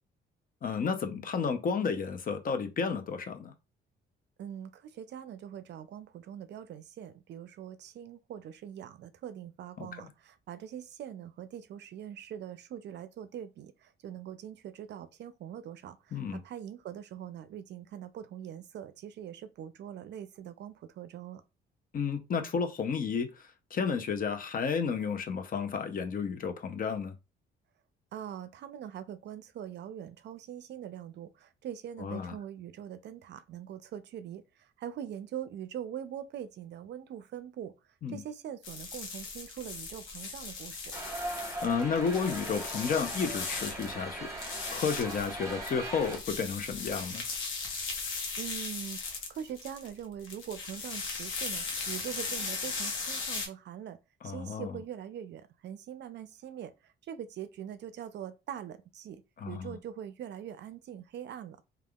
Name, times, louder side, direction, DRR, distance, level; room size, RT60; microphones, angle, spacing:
voice 1, 0.6-3.5 9.8-9.9 16.1-16.4 21.9-23.3 23.7-27.1 32.0-32.3 38.0-38.2 41.6-44.3 44.7-47.2 54.2-54.7 59.4-59.8, left 6 dB, 45° left, 0.6 m, -32 dB
voice 2, 4.4-21.4 28.1-37.7 38.1-41.0 48.0-48.1 48.4-54.0 54.2-61.6, right 10 dB, 60° right, 0.4 m, -43 dB
sound 1, 38.6-44.0 44.3-53.5, left 4 dB, 85° left, 0.9 m, -38 dB
sound 2, 40.9-46.2, right 1 dB, 15° right, 1.0 m, -39 dB
3.4 x 2.3 x 2.3 m
cardioid pair, 90°, 20 cm